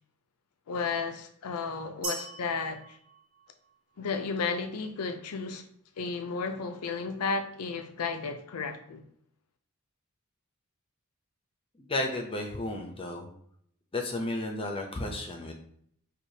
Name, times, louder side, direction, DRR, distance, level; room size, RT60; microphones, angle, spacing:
voice 1, 0.7-3.0 4.0-5.6 6.0-9.0, left 4 dB, 85° left, 0.5 m, -33 dB
sound 1, 2.0-4.0, right 2 dB, 90° right, 1.2 m, -40 dB
voice 2, 11.8-13.3 13.9-15.5, left 2 dB, 25° left, 0.6 m, -33 dB
4.7 x 2.4 x 2.7 m
head